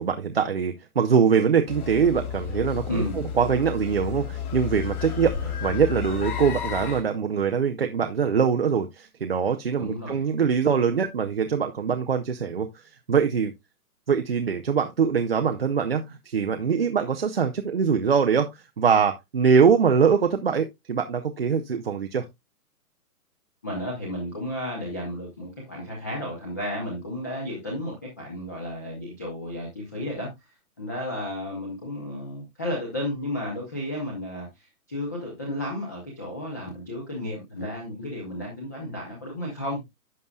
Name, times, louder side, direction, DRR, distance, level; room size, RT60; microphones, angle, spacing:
voice 1, 0.0-13.5 14.1-22.3, right 6 dB, 40° right, 0.5 m, -23 dB
sound 1, 1.7-7.0, left 8 dB, 65° left, 3.3 m, -32 dB
voice 2, 2.9-3.2 9.8-10.2 23.6-30.5 30.8-39.8, left 1 dB, 10° left, 0.7 m, -33 dB
11.0 x 6.5 x 2.3 m
hypercardioid pair, 175°, 47 cm